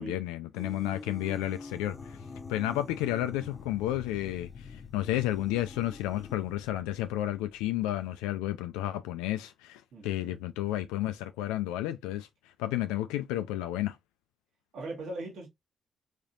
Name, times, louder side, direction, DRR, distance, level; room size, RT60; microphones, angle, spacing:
voice 1, 0.0-14.0, left 14 dB, 90° left, 0.3 m, -32 dB
sound 1, 0.5-6.4, left 3 dB, 30° left, 0.7 m, -46 dB
sound 2, 1.5-8.0, left 6 dB, 60° left, 0.7 m, -48 dB
voice 2, 9.9-10.4 14.7-15.5, right 2 dB, 70° right, 1.7 m, -40 dB
3.6 x 3.4 x 2.7 m
hypercardioid pair, 50°, 0 cm